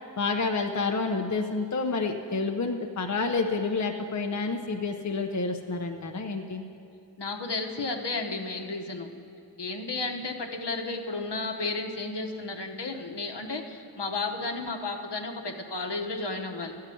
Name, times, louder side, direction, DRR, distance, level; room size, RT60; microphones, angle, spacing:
voice 1, 0.2-6.6, left 4 dB, 40° left, 3 dB, 0.7 m, -29 dB
voice 2, 7.2-9.1 9.6-16.7, left 3 dB, 65° left, 2 dB, 1.1 m, -33 dB
13.0 x 5.7 x 8.4 m, 2.6 s
wide cardioid pair, 40°, 44 cm